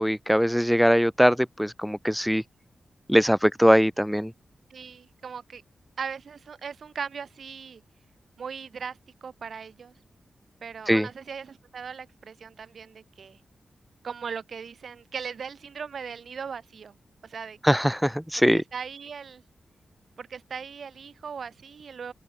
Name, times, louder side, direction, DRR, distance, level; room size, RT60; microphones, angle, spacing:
voice 1, 0.0-2.4 3.1-4.3 10.9-11.1 17.6-18.6, equal, ahead, 0.3 m, -21 dB
voice 2, 4.7-5.6 6.0-7.8 8.4-9.9 10.6-13.4 14.0-16.9 17.2-17.6 18.5-19.4 20.2-22.1, right 6 dB, 65° right, 2.5 m, -38 dB
wide cardioid pair, 100°, 0 cm